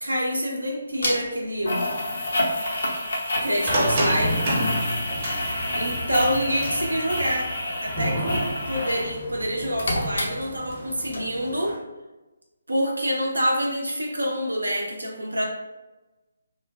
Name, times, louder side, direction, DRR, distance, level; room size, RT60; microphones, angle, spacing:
voice 1, 0.0-1.8 3.4-4.4 5.7-7.5 7.8-11.8 12.7-15.4, equal, 80° right, 0 dB, 0.5 m, -26 dB
sound 1, 1.0-1.1 1.7-9.1 9.4-10.8 11.1-11.2, left 1 dB, 60° left, 0.6 m, -28 dB
sound 2, 3.7-11.8, equal, 35° right, 0.8 m, -30 dB
3.0 x 2.0 x 2.3 m, 1.1 s
figure-of-eight pair, 145°, 0 cm